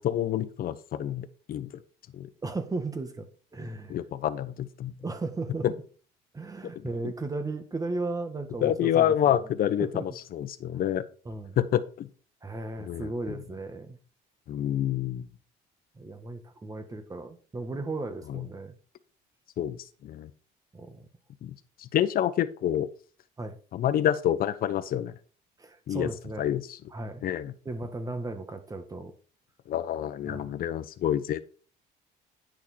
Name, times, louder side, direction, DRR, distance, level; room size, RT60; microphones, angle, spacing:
voice 1, 0.0-1.7 2.1-2.3 3.9-4.9 8.6-11.1 11.6-12.1 12.8-13.4 14.5-15.2 18.3-18.4 19.6-20.3 21.4-22.9 23.7-25.1 25.9-26.1 26.4-26.8 27.2-27.5 29.7-31.4, left 11 dB, 60° left, 11 dB, 1.1 m, -28 dB
voice 2, 2.4-4.0 5.0-5.7 6.3-9.4 9.8-10.1 11.3-11.6 12.4-14.0 16.0-18.8 20.7-21.1 23.4-23.6 25.6-26.5 26.9-27.2 27.7-29.1 30.3-30.5, right 2 dB, 20° right, 7 dB, 1.9 m, -35 dB
10.5 x 6.4 x 4.7 m, 0.39 s
cardioid pair, 110°, 17 cm